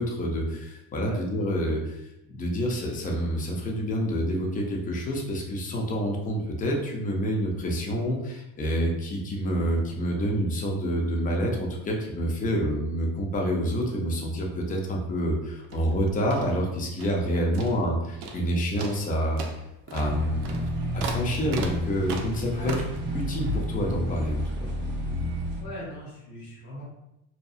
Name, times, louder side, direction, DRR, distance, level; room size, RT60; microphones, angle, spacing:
voice 1, 0.0-19.4 19.9-20.6 20.9-22.8 23.1-24.4, equal, 25° left, 0 dB, 0.5 m, -28 dB
sound 1, 15.6-17.3 17.5-17.9 18.2-18.5 18.8-23.0, right 4 dB, 80° right, 0.5 m, -38 dB
sound 2, 20.0-25.6, left 1 dB, 30° right, 0.5 m, -31 dB
voice 2, 25.6-26.8, equal, 60° left, -7 dB, 0.8 m, -40 dB
2.7 x 2.2 x 2.3 m, 0.88 s
cardioid pair, 110°, 36 cm